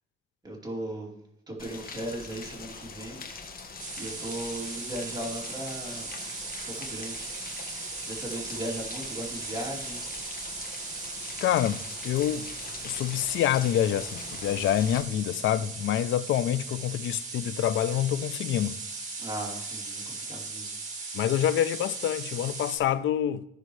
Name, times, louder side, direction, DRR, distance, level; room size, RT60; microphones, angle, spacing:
voice 1, 0.4-1.1 1.5-3.3 4.0-6.1 6.6-7.3 8.0-10.0 10.4-10.7 19.2-20.7 21.1-21.2, right 1 dB, 20° right, 3.0 m, -37 dB
Rain, 1.6-15.0, left 4 dB, 45° left, 1.6 m, -43 dB
sound 1, 3.8-22.8, right 3 dB, 35° right, 2.2 m, -38 dB
voice 2, 11.4-12.5 12.8-18.8 21.1-23.5, left 11 dB, 75° left, 0.5 m, -27 dB
15.0 x 6.4 x 3.2 m
cardioid pair, 90°, 20 cm